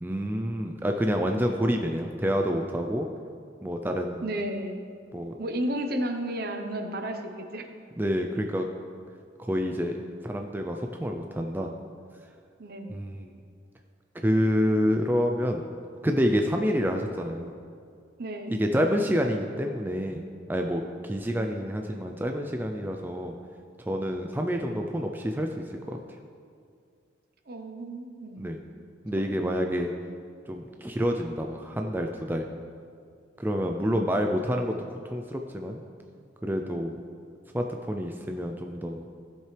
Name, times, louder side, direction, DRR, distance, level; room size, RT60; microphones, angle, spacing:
voice 1, 0.0-3.1 3.6-4.2 5.1-5.3 8.0-8.7 9.4-9.9 10.2-11.7 12.9-13.3 14.2-15.6 16.0-17.5 18.5-20.2 20.5-23.4 23.9-26.0 28.4-28.6 29.0-29.9 30.5-32.5 33.4-35.8 36.4-37.0 37.5-39.1, equal, 10° right, 3 dB, 0.4 m, -28 dB
voice 2, 4.2-4.8 5.4-7.7 12.6-13.0 18.2-18.6 27.5-28.4 29.2-29.3 33.8-34.0, right 1 dB, 55° right, 5 dB, 0.9 m, -33 dB
16.0 x 7.5 x 3.3 m, 2.3 s
head